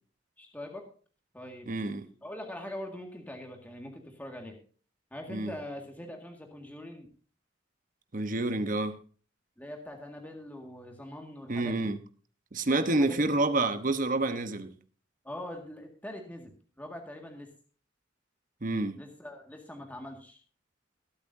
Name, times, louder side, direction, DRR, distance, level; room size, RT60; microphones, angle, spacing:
voice 1, 0.4-0.8 1.3-1.8 2.2-4.6 5.1-7.1 9.6-11.9 12.8-13.3 15.2-16.5 16.8-17.5 18.9-20.4, left 1 dB, 10° left, 1.9 m, -43 dB
voice 2, 1.7-2.1 5.3-5.5 8.1-9.0 11.5-12.0 12.5-14.7 18.6-19.0, right 2 dB, 45° right, 1.0 m, -28 dB
22.0 x 8.5 x 2.7 m
head